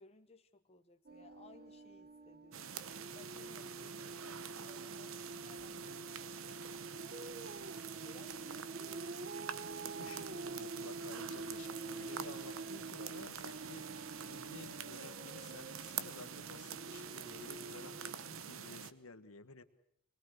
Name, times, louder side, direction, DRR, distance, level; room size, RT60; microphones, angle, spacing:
voice 1, 0.0-6.5 8.0-8.7 18.2-18.3, left 3 dB, 25° left, 5 dB, 1.1 m, -61 dB
sound 1, 1.1-18.1, right 3 dB, 45° right, 1.2 m, -48 dB
sound 2, 2.5-18.9, right 7 dB, 65° right, 1.0 m, -46 dB
voice 2, 10.0-13.8 14.3-19.6, left 3 dB, 70° left, 10 dB, 1.5 m, -53 dB
24.0 x 21.0 x 6.5 m, 0.76 s
head